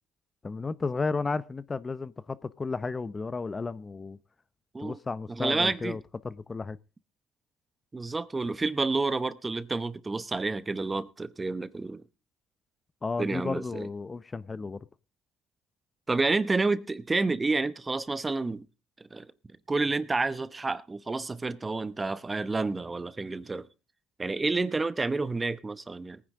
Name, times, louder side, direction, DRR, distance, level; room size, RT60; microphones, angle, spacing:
voice 1, 0.4-4.2 4.8-6.8 13.0-14.8, left 4 dB, 25° left, 0.6 m, -33 dB
voice 2, 5.3-6.0 7.9-12.0 13.2-13.9 16.1-18.6 19.1-19.3 19.7-23.7 24.2-26.2, right 3 dB, 20° right, 0.8 m, -29 dB
19.0 x 9.8 x 3.7 m
supercardioid pair, 80°, 0 cm